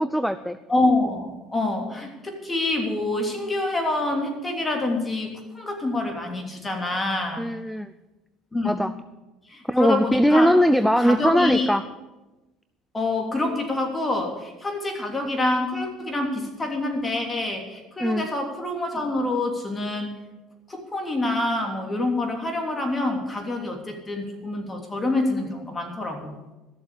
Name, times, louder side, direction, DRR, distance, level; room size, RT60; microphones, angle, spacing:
voice 1, 0.0-0.6 7.4-7.9 8.6-8.9 9.7-11.8 18.0-18.3, equal, ahead, 13 dB, 0.5 m, -20 dB
voice 2, 0.7-7.5 8.5-8.8 9.5-10.6 11.0-11.7 12.9-20.1 20.7-26.3, left 2 dB, 20° left, 3 dB, 3.1 m, -26 dB
13.5 x 7.0 x 8.5 m, 1.1 s
supercardioid pair, 85°, 0 cm